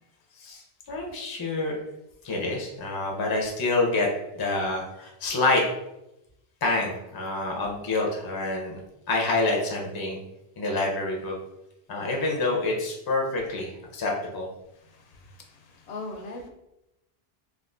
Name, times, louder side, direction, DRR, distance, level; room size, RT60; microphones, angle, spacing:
voice 1, 0.9-1.8 2.2-4.1 4.3-5.6 6.6-8.8 9.1-10.2 10.6-11.3 11.9-14.5, left 2 dB, 30° left, 0 dB, 0.4 m, -27 dB
voice 2, 14.7-16.5, left 2 dB, 75° left, 2 dB, 0.8 m, -40 dB
3.5 x 2.3 x 2.4 m, 0.88 s
omnidirectional pair, 1.0 m